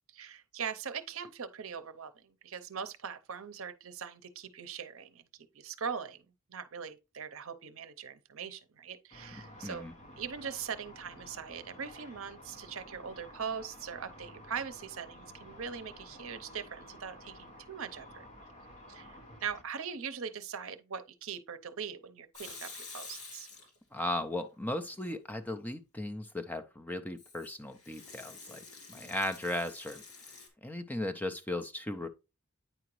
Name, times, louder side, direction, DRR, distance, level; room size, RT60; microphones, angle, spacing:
voice 1, 0.1-5.2 5.5-6.2 6.5-9.8 10.2-18.3 18.9-23.5, right 6 dB, 65° right, 0.7 m, -41 dB
Car / Traffic noise roadway noise / Engine, 9.1-19.6, left 1 dB, 35° left, 1.2 m, -52 dB
voice 2, 9.6-9.9 23.9-30.0 30.6-32.1, left 1 dB, 5° left, 0.5 m, -36 dB
Water tap faucet / Sink (filling or washing) / Liquid, 22.3-24.0 24.4-25.1 27.2-30.5, left 4 dB, 90° left, 3.0 m, -49 dB
9.1 x 4.9 x 3.0 m
head